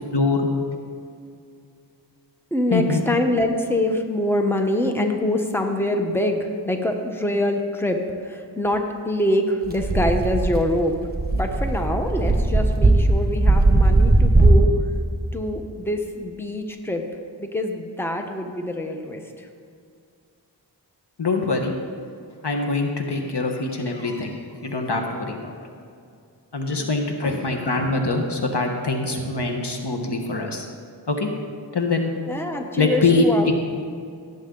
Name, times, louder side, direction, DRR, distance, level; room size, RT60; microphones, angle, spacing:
voice 1, 0.1-0.5 2.7-3.0 21.2-21.7 22.4-25.5 26.5-30.7 31.1-31.3 31.7-32.1 32.5-33.5, left 3 dB, 65° left, 2 dB, 1.4 m, -23 dB
voice 2, 2.5-11.0 11.3-14.7 15.3-17.0 17.4-19.2 26.7-26.9 32.3-33.5, left 1 dB, 5° left, 4 dB, 1.0 m, -24 dB
sound 1, 9.7-14.7, right 2 dB, 20° right, 1.5 m, -18 dB
17.0 x 7.5 x 3.9 m, 2.4 s
wide cardioid pair, 45°, 44 cm